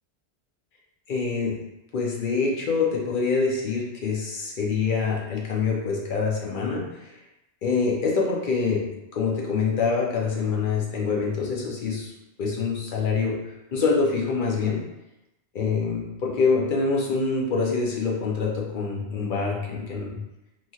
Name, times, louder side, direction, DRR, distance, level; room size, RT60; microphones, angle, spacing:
voice 1, 1.1-1.6 1.9-7.2 7.6-12.1 12.4-14.8 15.5-20.2, left 4 dB, 55° left, -2 dB, 0.7 m, -25 dB
3.0 x 2.7 x 2.3 m, 0.92 s
omnidirectional pair, 1.1 m